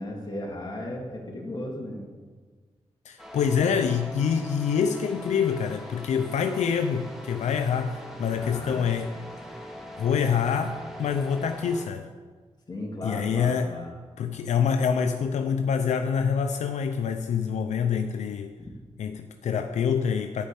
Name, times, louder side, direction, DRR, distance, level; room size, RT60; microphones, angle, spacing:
voice 1, 0.0-2.0 8.3-8.8 12.7-13.9 18.6-18.8, left 1 dB, 35° left, -1 dB, 2.9 m, -36 dB
voice 2, 3.0-9.1 10.0-12.1 13.0-13.8 14.2-18.5 19.0-20.5, left 7 dB, 85° left, 6 dB, 0.6 m, -26 dB
sound 1, 3.2-11.9, equal, 5° right, 2.1 m, -42 dB
11.5 x 5.5 x 8.4 m, 1.5 s
cardioid pair, 75°, 12 cm